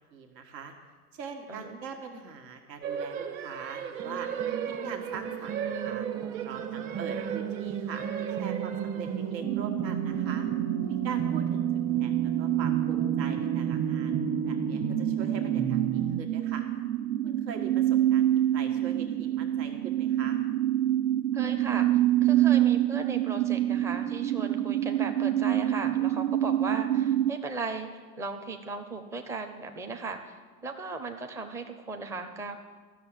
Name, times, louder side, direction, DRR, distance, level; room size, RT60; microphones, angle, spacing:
voice 1, 0.1-0.7 1.1-4.3 4.8-6.1 6.4-10.5 10.9-11.6 12.0-14.2 14.4-16.6 17.2-18.2 18.5-20.4, right 6 dB, 85° right, 3 dB, 1.7 m, -42 dB
sound 1, 2.8-9.4, right 8 dB, 45° right, 1.2 m, -36 dB
sound 2, 4.0-16.2, right 6 dB, 25° right, 0.9 m, -34 dB
voice 2, 6.8-7.1 21.3-27.9 28.2-32.6, right 3 dB, 5° right, 5 dB, 0.4 m, -37 dB
sound 3, 9.4-27.3, right 13 dB, 65° right, 0.7 m, -27 dB
13.5 x 6.4 x 8.7 m, 1.4 s
hypercardioid pair, 130°, 49 cm